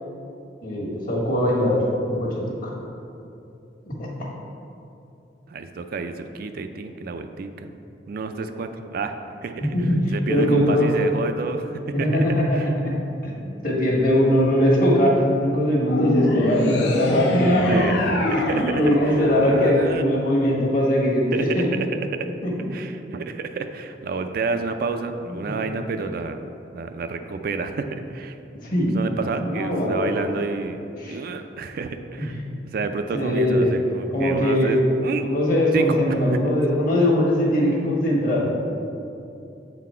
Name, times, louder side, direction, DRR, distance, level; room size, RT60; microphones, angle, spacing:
voice 1, 0.6-1.8 2.1-2.7 3.9-4.1 9.6-10.9 11.9-12.9 13.2-13.3 13.6-17.8 18.5-21.7 22.4-22.5 25.3-25.5 28.6-28.9 29.4-30.2 31.0-31.2 32.2-32.3 33.1-33.7 34.1-34.8 35.2-38.6, equal, 50° left, -3 dB, 1.3 m, -21 dB
voice 2, 5.5-7.8 8.1-9.2 9.4-9.8 10.1-12.1 12.5-12.7 17.7-20.0 21.3-21.9 22.1-22.3 22.7-26.4 26.7-28.4 28.9-32.4 32.7-35.3 35.7-36.4, right 4 dB, 55° right, 7 dB, 0.3 m, -30 dB
sound 1, 15.9-20.4, left 1 dB, 75° left, 0.7 m, -24 dB
7.4 x 4.1 x 4.3 m, 2.7 s
head